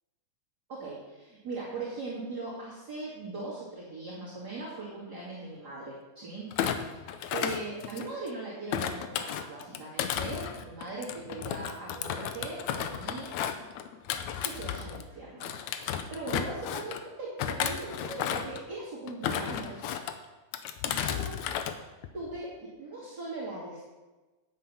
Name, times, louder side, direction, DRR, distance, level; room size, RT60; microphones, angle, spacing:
voice 1, 0.7-7.0 7.3-13.4 14.4-19.9 20.9-21.4 22.1-23.8, right 2 dB, 30° right, -8 dB, 2.7 m, -40 dB
Thump thud, 6.5-8.3 8.7-15.1 15.4-17.0 17.4-18.6 19.1-20.1 20.5-21.7 22.0-22.4, left 9 dB, 75° left, 1.8 m, -33 dB
9.8 x 8.7 x 5.7 m, 1.2 s
omnidirectional pair, 3.9 m